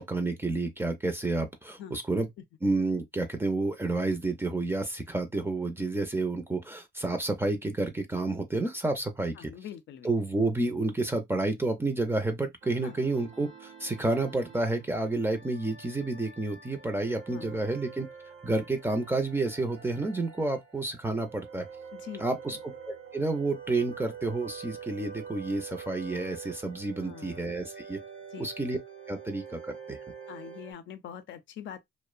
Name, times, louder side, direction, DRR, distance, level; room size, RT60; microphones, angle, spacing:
voice 1, 0.0-2.3 2.6-9.5 10.0-18.1 18.4-21.7 22.2-22.6 22.9-28.0 28.4-28.8 29.1-30.0, right 2 dB, 10° right, 0.5 m, -30 dB
voice 2, 9.4-10.1 12.8-13.0 17.3-17.7 21.9-22.2 27.0-27.4 28.3-28.5 30.3-31.8, left 9 dB, 70° left, 0.5 m, -43 dB
sound 1, 12.6-30.7, right 6 dB, 60° right, 0.9 m, -46 dB
2.5 x 2.1 x 2.3 m
cardioid pair, 90°, 20 cm